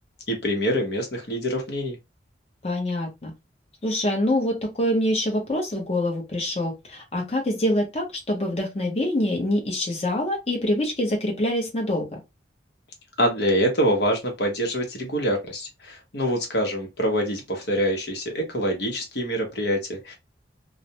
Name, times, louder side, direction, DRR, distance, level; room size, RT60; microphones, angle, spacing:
voice 1, 0.3-2.0 13.2-20.1, equal, 70° left, 0.9 m, -25 dB
voice 2, 2.6-3.3 3.8-12.1, left 1 dB, 35° left, 0.8 m, -25 dB
2.3 x 2.0 x 2.8 m
head